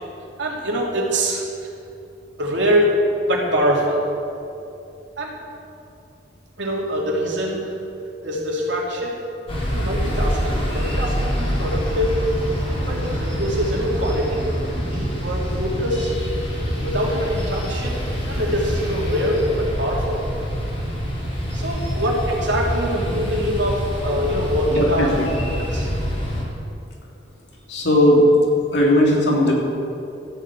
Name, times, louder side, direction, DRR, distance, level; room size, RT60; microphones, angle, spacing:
voice 1, 0.4-1.7 2.4-2.9 3.3-4.0 5.2-5.3 6.6-7.6 8.2-9.2 9.7-12.2 12.9-14.4 14.7-16.1 16.8-18.0 18.3-20.2 21.5-25.1 25.4-25.9, equal, 80° right, -2 dB, 3.0 m, -24 dB
sound 1, 9.5-26.4, equal, 30° left, 3.9 m, -25 dB
voice 2, 24.7-25.3 27.7-28.2 28.7-29.5, left 1 dB, 70° left, -3 dB, 3.0 m, -17 dB
14.0 x 8.0 x 8.4 m, 2.7 s
head